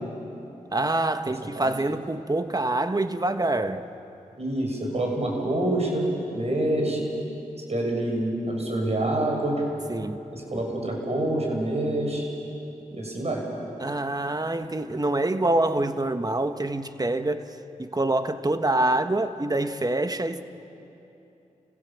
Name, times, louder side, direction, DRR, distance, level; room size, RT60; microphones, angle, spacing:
voice 1, 0.7-3.9 9.9-10.2 13.8-20.4, right 2 dB, 25° right, 1.4 m, -26 dB
voice 2, 4.4-7.1 7.7-9.6 10.3-12.2 12.9-13.4, right 1 dB, 45° right, 6.8 m, -26 dB
30.0 x 16.5 x 7.2 m
cardioid pair, 40°, 15 cm